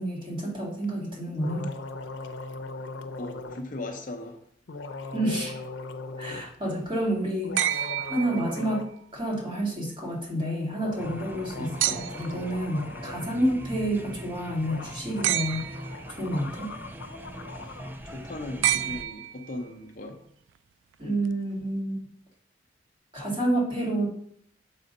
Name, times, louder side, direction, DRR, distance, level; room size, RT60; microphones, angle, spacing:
voice 1, 0.0-1.7 5.1-5.6 6.2-8.8 9.1-15.7 16.2-16.7 21.0-22.0 23.1-24.1, right 1 dB, 30° right, -4 dB, 2.4 m, -29 dB
sound 1, 1.4-3.6 4.7-6.5 7.3-8.9 9.2-9.3 10.7-13.4 14.4-14.5 14.6-17.9, left 3 dB, 90° left, 0.6 m, -40 dB
voice 2, 3.2-4.4 17.6-17.8 18.0-20.2, left 2 dB, 45° left, 4 dB, 0.8 m, -38 dB
sound 2, 7.6-8.9 11.8-12.4 15.2-16.0 18.6-19.7 21.3-21.4, right 12 dB, 80° right, 0.3 m, -29 dB
sound 3, 11.0-19.0, right 1 dB, 10° right, 0.4 m, -41 dB
6.7 x 4.1 x 5.3 m, 0.66 s
head